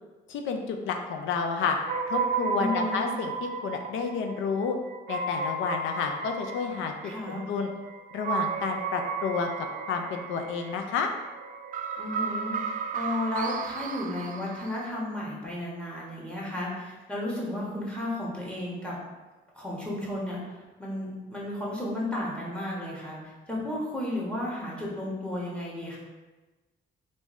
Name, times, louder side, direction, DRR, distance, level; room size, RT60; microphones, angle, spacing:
voice 1, 0.3-1.8 2.1-3.3 3.6-4.8 5.1-7.7 8.1-11.1, left 5 dB, 80° left, 4 dB, 0.4 m, -30 dB
sound 1, 1.9-14.9, right 5 dB, 45° right, 0.4 m, -34 dB
voice 2, 2.6-3.1 7.0-7.4 12.0-19.0 19.5-20.4 20.8-26.0, left 1 dB, 5° left, -5 dB, 1.2 m, -33 dB
3.4 x 2.6 x 3.1 m, 1.2 s
cardioid pair, 90°, 20 cm